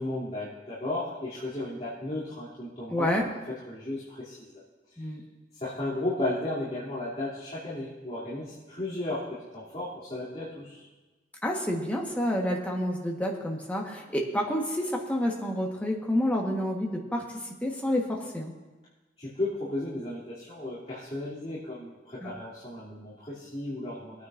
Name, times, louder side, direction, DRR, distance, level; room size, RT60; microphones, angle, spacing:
voice 1, 0.0-3.3 3.7-4.5 5.5-9.2 9.5-10.9 19.2-24.3, left 2 dB, 35° left, -11 dB, 2.9 m, -34 dB
voice 2, 2.9-3.3 5.0-5.2 11.4-17.2 17.6-18.5 22.2-22.3, left 1 dB, 10° left, -1 dB, 1.3 m, -29 dB
21.5 x 9.4 x 2.6 m, 1.2 s
head